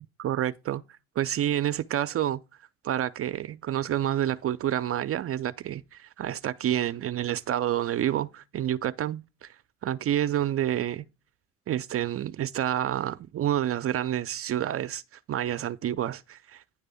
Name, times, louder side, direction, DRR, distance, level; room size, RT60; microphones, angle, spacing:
voice 1, 0.2-2.4 2.8-9.6 9.8-11.1 11.7-16.6, right 11 dB, 45° right, 0.5 m, -29 dB
9.8 x 3.3 x 6.9 m
hypercardioid pair, 55°, 32 cm